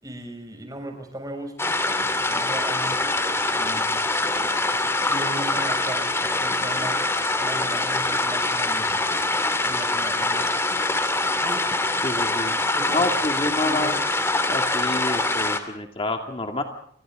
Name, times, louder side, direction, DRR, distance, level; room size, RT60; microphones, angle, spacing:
voice 1, 0.0-3.0 3.5-4.0 5.1-7.1 7.4-9.0 9.6-10.7 11.4-11.7 12.7-13.1 13.4-13.9, right 1 dB, 20° right, 4 dB, 6.5 m, -37 dB
sound 1, 1.6-15.6, left 2 dB, 15° left, 2.6 m, -24 dB
voice 2, 12.0-12.6 12.9-13.9 14.5-16.6, left 2 dB, 30° left, 4 dB, 2.4 m, -27 dB
30.0 x 26.0 x 3.8 m, 0.63 s
head